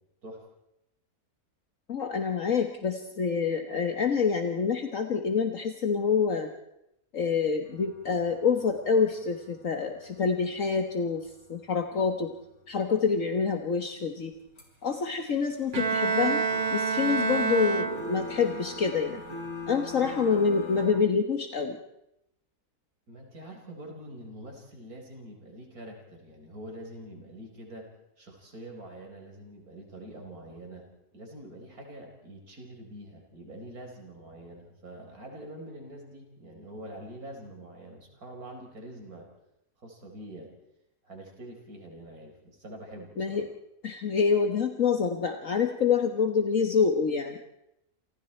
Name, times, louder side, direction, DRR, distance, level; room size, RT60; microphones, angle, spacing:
voice 1, 1.9-6.5 7.1-12.3 12.7-14.3 14.8-16.4 16.7-19.2 19.7-21.8 43.2-43.5 43.8-47.4, left 5 dB, 60° left, 5 dB, 1.7 m, -27 dB
sound 1, 7.6-13.6 14.0-14.1 14.3-14.6 14.9-20.9, left 1 dB, 80° left, 6.3 m, -42 dB
Bowed string instrument, 15.7-18.4, right 5 dB, 35° right, 1.0 m, -28 dB
voice 2, 23.1-27.9 28.2-30.9 31.1-39.3 39.8-40.5 41.0-43.4, right 1 dB, 75° right, 2 dB, 5.1 m, -45 dB
29.0 x 28.5 x 4.5 m, 0.85 s
omnidirectional pair, 1.6 m